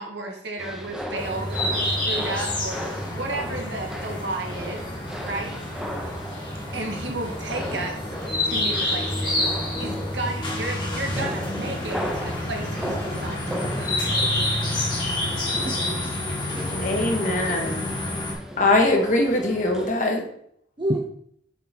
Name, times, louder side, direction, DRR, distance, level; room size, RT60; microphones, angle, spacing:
voice 1, 0.0-4.8 5.2-5.6 6.7-14.0, right 2 dB, 75° right, 1.5 m, -33 dB
sound 1, 0.6-19.9, equal, 5° right, 0.9 m, -36 dB
sound 2, 1.2-18.3, left 1 dB, 25° left, 1.5 m, -28 dB
voice 2, 15.5-16.8 20.8-21.0, right 1 dB, 25° right, 0.5 m, -30 dB
voice 3, 16.8-17.9 18.6-20.3, left 2 dB, 45° left, 1.3 m, -22 dB
7.3 x 3.7 x 4.3 m
head